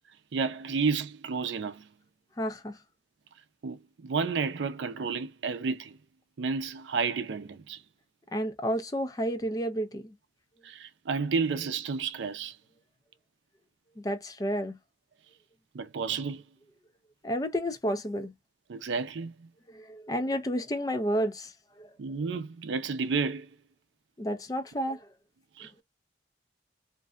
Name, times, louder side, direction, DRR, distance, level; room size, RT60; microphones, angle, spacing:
voice 1, 0.3-1.9 3.6-6.0 6.4-7.8 10.6-12.6 15.7-16.4 18.7-19.5 22.0-23.5 25.6-25.8, right 5 dB, 80° right, 0.5 m, -31 dB
voice 2, 2.4-2.8 8.3-10.1 14.0-14.8 17.2-18.3 19.7-21.9 24.2-25.1 25.6-25.7, equal, 20° left, 0.4 m, -31 dB
2.6 x 2.2 x 2.3 m
head